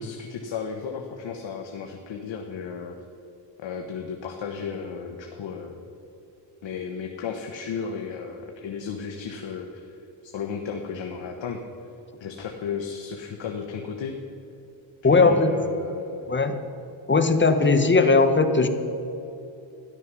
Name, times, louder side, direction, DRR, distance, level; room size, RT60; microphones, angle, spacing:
voice 1, 0.0-3.0 3.6-5.8 6.6-9.9 10.2-11.6 12.2-14.2 15.1-16.2, left 6 dB, 70° left, 3 dB, 1.3 m, -34 dB
voice 2, 15.0-15.5 16.3-16.6 17.1-18.7, left 3 dB, 25° left, 8 dB, 1.2 m, -18 dB
13.5 x 11.5 x 6.1 m, 2.9 s
cardioid pair, 90°, 47 cm